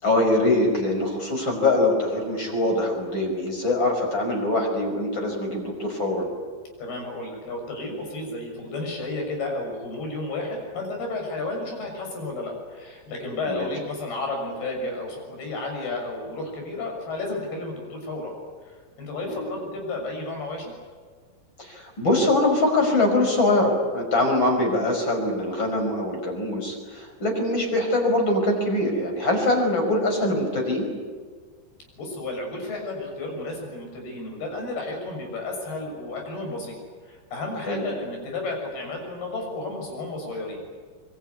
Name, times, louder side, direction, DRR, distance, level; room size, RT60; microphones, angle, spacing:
voice 1, 0.0-6.3 13.5-13.7 19.2-19.6 21.6-30.9 37.7-37.8, left 2 dB, 25° left, 2 dB, 5.9 m, -23 dB
voice 2, 6.8-18.3 19.0-20.7 32.0-36.8 37.0-40.6, left 2 dB, 55° left, 2 dB, 8.4 m, -32 dB
24.5 x 24.5 x 9.7 m, 1.5 s
omnidirectional pair, 5.3 m